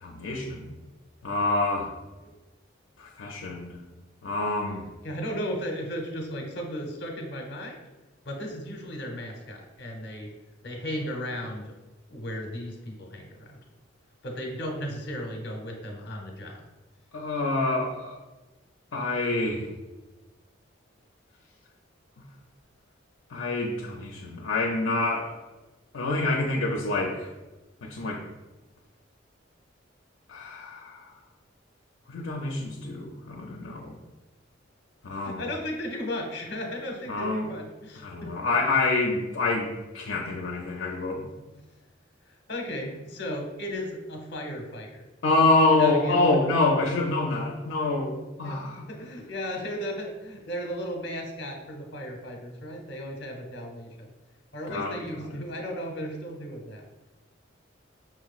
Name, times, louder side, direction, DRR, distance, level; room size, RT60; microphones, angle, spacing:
voice 1, 0.0-0.7 1.2-1.9 3.0-3.8 4.2-4.8 17.1-18.2 18.9-19.7 23.3-25.4 25.9-27.3 27.8-28.2 30.3-31.1 32.1-33.9 35.0-35.4 37.1-37.5 38.0-41.3 45.2-48.8 54.7-55.0, left 2 dB, 80° left, -1 dB, 0.5 m, -26 dB
voice 2, 5.0-7.8 8.2-10.3 10.6-11.7 12.1-13.6 14.2-16.6 35.2-38.3 41.5-41.6 42.5-45.0 45.7-46.4 48.4-54.1 54.5-56.8, equal, 60° left, 2 dB, 0.9 m, -35 dB
5.8 x 2.9 x 2.4 m, 1.1 s
head